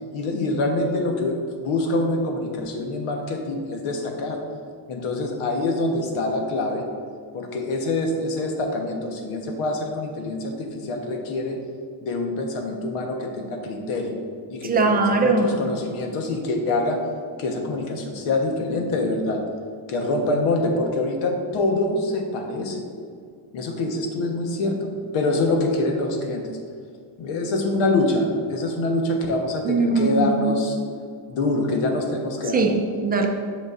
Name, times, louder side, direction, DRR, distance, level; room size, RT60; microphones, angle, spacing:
voice 1, 0.1-4.4 4.9-6.9 7.3-11.6 12.0-14.2 14.5-17.0 17.4-19.4 19.9-22.8 23.5-24.9 25.1-26.6 27.2-30.8 31.3-32.6, left 2 dB, 85° left, 3 dB, 1.1 m, -25 dB
voice 2, 14.6-15.5 29.6-30.4 32.5-33.3, right 3 dB, 20° right, 3 dB, 0.4 m, -20 dB
8.0 x 6.1 x 2.4 m, 2.1 s
cardioid pair, 155°, 50 cm